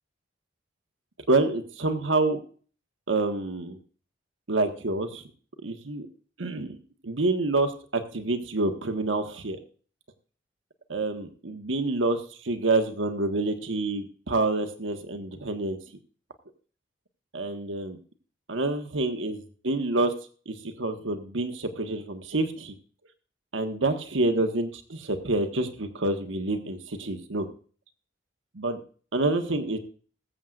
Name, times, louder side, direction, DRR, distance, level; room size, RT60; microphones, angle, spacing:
voice 1, 1.3-2.4 3.1-3.8 4.5-5.2 5.6-6.1 6.4-6.8 7.0-9.6 10.9-15.8 17.3-18.0 18.5-20.1 20.5-22.7 23.5-27.5 28.5-28.8 29.1-29.8, right 2 dB, 90° right, 6 dB, 1.3 m, -27 dB
21.0 x 7.8 x 2.4 m, 0.41 s
head